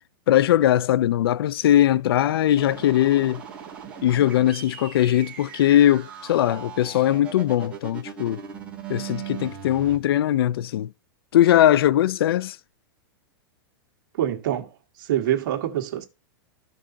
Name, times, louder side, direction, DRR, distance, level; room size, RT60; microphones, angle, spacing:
voice 1, 0.3-3.4 4.0-8.4 8.9-10.9 11.3-12.6, left 12 dB, 80° left, 0.4 m, -20 dB
sound 1, 2.6-10.0, right 8 dB, 10° right, 1.8 m, -39 dB
voice 2, 14.2-14.7 15.0-16.1, right 11 dB, 55° right, 1.6 m, -25 dB
14.0 x 5.3 x 2.7 m
supercardioid pair, 160°, 12 cm